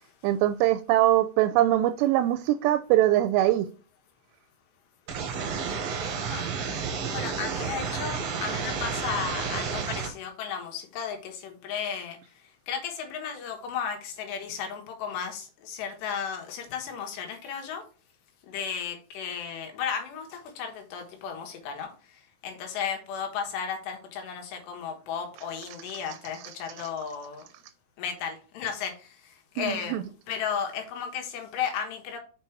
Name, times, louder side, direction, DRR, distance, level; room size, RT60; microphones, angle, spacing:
voice 1, 0.2-3.7 29.6-30.0, right 14 dB, 90° right, 11 dB, 2.7 m, -22 dB
sound 1, 5.1-10.1, right 5 dB, 65° right, 1.6 m, -31 dB
voice 2, 7.1-17.9 18.4-27.5 28.0-32.2, left 7 dB, 80° left, 3 dB, 3.6 m, -34 dB
6.9 x 5.1 x 4.6 m, 0.37 s
omnidirectional pair, 4.8 m